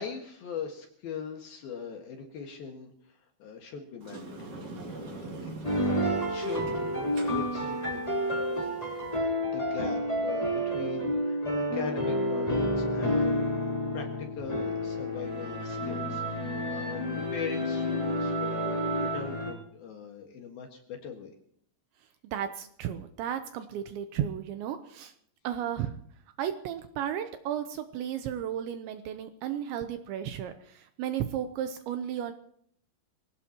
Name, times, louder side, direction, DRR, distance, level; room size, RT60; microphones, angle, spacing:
voice 1, 0.0-8.0 8.5-17.0 17.3-21.3, left 6 dB, 60° left, 2 dB, 2.8 m, -41 dB
Sliding door, 4.0-9.2, right 2 dB, 40° right, 3.3 m, -43 dB
sound 1, 5.6-19.5, equal, 10° left, 2.7 m, -30 dB
voice 2, 22.3-25.1 25.4-25.9 26.4-32.3, right 10 dB, 80° right, 8 dB, 2.8 m, -34 dB
25.0 x 17.5 x 2.9 m, 0.65 s
omnidirectional pair, 5.8 m